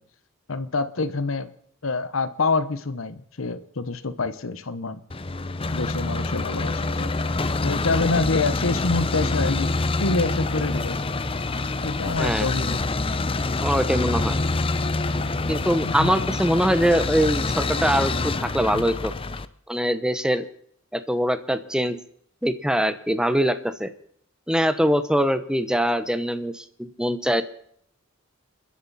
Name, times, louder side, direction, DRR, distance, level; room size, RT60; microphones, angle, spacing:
voice 1, 0.5-1.5 1.8-5.0 5.7-7.1 7.6-9.7 10.0-11.0 11.8-12.8 15.9-16.3, left 3 dB, 80° left, 12 dB, 1.0 m, -26 dB
sound 1, 5.1-19.4, left 3 dB, 25° left, 0.7 m, -26 dB
voice 2, 13.6-14.4 15.1-19.1 19.7-20.4 20.9-22.0 22.4-23.9 24.5-27.4, equal, 5° right, 11 dB, 1.0 m, -23 dB
29.5 x 10.5 x 4.2 m, 0.66 s
head